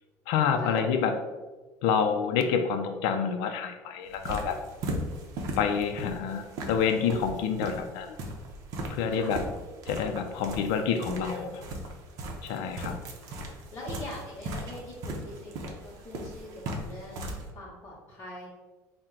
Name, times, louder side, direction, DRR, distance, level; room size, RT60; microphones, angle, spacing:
voice 1, 0.3-1.1 1.8-4.6 5.6-8.2 8.9-9.4 9.9-11.6 12.4-12.9, left 7 dB, 80° left, 5 dB, 0.4 m, -28 dB
voice 2, 4.0-4.6 9.1-9.3 11.4-11.8 12.7-12.9 13.2-18.5, left 1 dB, 35° left, -8 dB, 0.8 m, -44 dB
sound 1, 4.1-17.5, right 1 dB, 50° right, 0.6 m, -38 dB
4.3 x 2.1 x 3.7 m, 1.2 s
cardioid pair, 165°, 7 cm